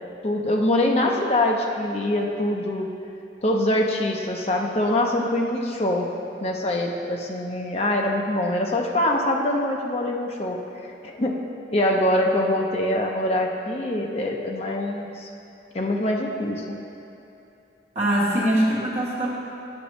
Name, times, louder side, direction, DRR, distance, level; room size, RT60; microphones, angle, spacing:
voice 1, 0.2-2.9 3.4-6.1 6.4-10.6 11.0-11.4 11.7-15.3 15.7-16.8, left 1 dB, 35° left, 1 dB, 0.5 m, -24 dB
voice 2, 17.9-19.3, right 1 dB, 40° right, -7 dB, 1.4 m, -22 dB
9.6 x 6.0 x 3.1 m, 2.8 s
head